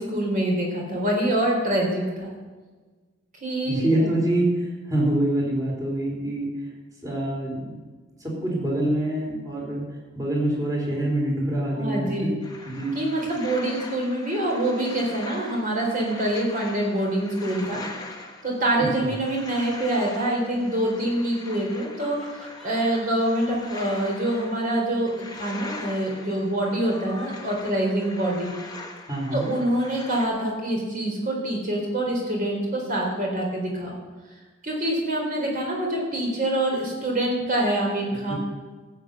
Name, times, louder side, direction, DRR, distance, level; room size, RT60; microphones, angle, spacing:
voice 1, 0.0-2.3 3.4-4.1 11.7-12.3 12.9-17.8 18.4-28.5 29.3-33.9 34.6-38.3, right 1 dB, 40° right, -1 dB, 3.8 m, -25 dB
voice 2, 3.7-6.7 7.0-7.7 8.2-9.8 10.1-12.3 12.7-13.0 19.0-19.2 29.1-29.5 38.3-38.4, right 1 dB, 15° right, -2 dB, 3.6 m, -25 dB
sound 1, 12.4-30.3, left 2 dB, 20° left, 1.3 m, -42 dB
sound 2, 21.6-25.0 25.3-25.4 25.6-25.7 26.6-28.8, left 2 dB, ahead, 2.0 m, -45 dB
14.5 x 8.4 x 6.6 m, 1.4 s
head